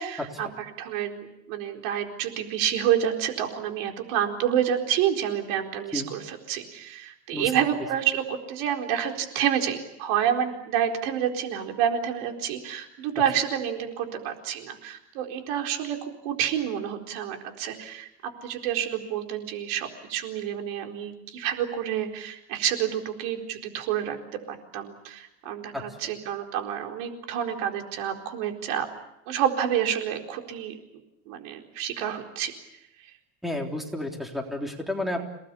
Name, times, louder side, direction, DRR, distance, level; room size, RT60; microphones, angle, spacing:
voice 1, 0.0-18.1 18.4-24.2 24.5-28.9 29.3-30.7 31.3-32.5, right 9 dB, 90° right, 3 dB, 4.4 m, -28 dB
voice 2, 33.4-35.2, left 1 dB, ahead, 2 dB, 3.5 m, -31 dB
29.5 x 19.0 x 8.5 m, 0.83 s
cardioid pair, 150°, 39 cm